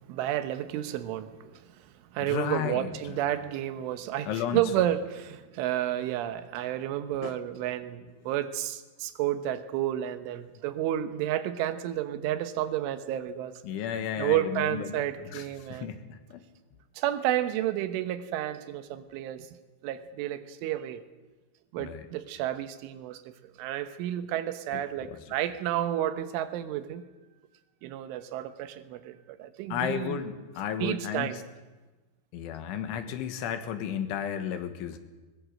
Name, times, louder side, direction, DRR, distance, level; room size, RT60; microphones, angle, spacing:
voice 1, 0.1-13.6 14.2-15.9 17.0-19.5 19.8-21.0 21.7-27.1 27.8-30.2 30.8-31.4, right 12 dB, 80° right, 11 dB, 3.6 m, -31 dB
voice 2, 2.2-2.9 4.3-4.6 7.2-7.4 13.6-15.0 15.3-15.4 15.7-16.4 21.8-22.0 25.0-25.2 29.7-31.3 32.3-35.0, left 9 dB, 75° left, 8 dB, 3.9 m, -33 dB
22.0 x 20.5 x 7.8 m, 1.2 s
omnidirectional pair, 5.6 m